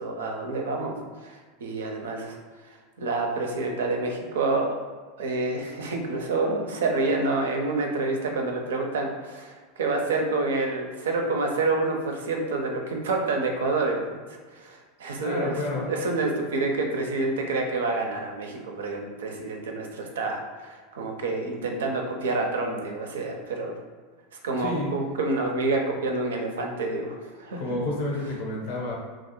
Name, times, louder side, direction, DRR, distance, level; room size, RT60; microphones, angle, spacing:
voice 1, 0.0-2.4 2.6-4.8 5.2-14.2 14.5-23.7 24.4-27.6, right 3 dB, 80° right, 2 dB, 0.4 m, -28 dB
voice 2, 15.2-15.9 24.6-25.0 27.6-28.9, left 1 dB, 75° left, -3 dB, 0.7 m, -30 dB
2.3 x 2.0 x 2.9 m, 1.4 s
hypercardioid pair, 95°, 0 cm